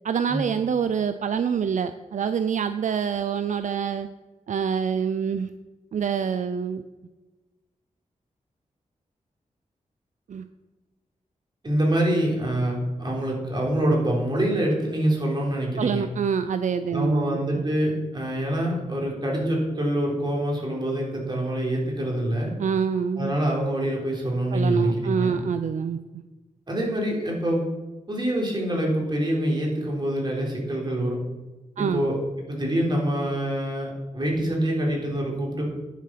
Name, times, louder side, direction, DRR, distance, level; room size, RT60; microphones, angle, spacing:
voice 1, 0.0-4.1 4.5-5.5 5.9-6.8 10.3-10.5 15.8-17.6 22.6-23.3 24.5-26.0 31.8-32.1, right 7 dB, 70° right, 10 dB, 0.5 m, -26 dB
voice 2, 11.6-16.0 16.9-22.5 23.2-25.4 26.7-27.6 28.1-31.2 31.8-32.2 32.5-35.7, right 1 dB, 35° right, -2 dB, 3.7 m, -25 dB
10.5 x 7.4 x 5.9 m, 1.1 s
wide cardioid pair, 110°, 13 cm